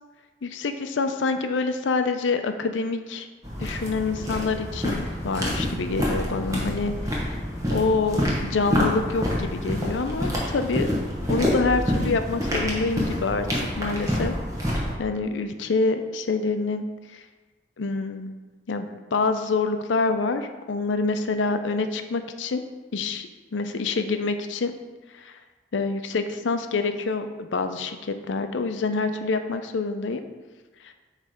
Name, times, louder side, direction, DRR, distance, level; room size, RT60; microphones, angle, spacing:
voice 1, 0.4-3.3 3.6-7.4 7.7-10.9 11.3-14.3 15.0-16.8 17.1-17.2 17.8-18.3 18.7-22.6 22.9-24.7 25.1-25.4 25.7-30.2, left 3 dB, 90° left, 8 dB, 0.5 m, -26 dB
sound 1, 3.4-14.9, equal, 20° right, 1.2 m, -27 dB
8.1 x 3.3 x 4.9 m, 1.3 s
head